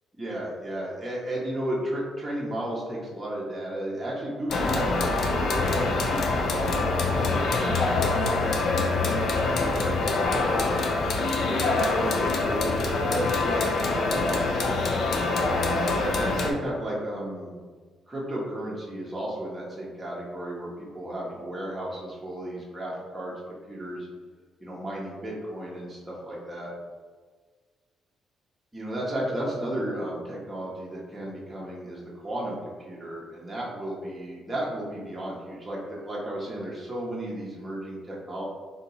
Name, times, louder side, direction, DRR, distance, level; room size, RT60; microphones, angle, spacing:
voice 1, 0.2-8.2 8.5-9.1 9.5-10.8 11.4-14.4 15.3-17.6 18.1-23.4 23.7-24.1 24.6-26.7 28.7-38.4, right 1 dB, 15° right, -6 dB, 0.9 m, -34 dB
sound 1, 4.5-16.5, left 3 dB, 65° left, 0.5 m, -25 dB
2.8 x 2.7 x 4.0 m, 1.5 s
cardioid pair, 90°, 0 cm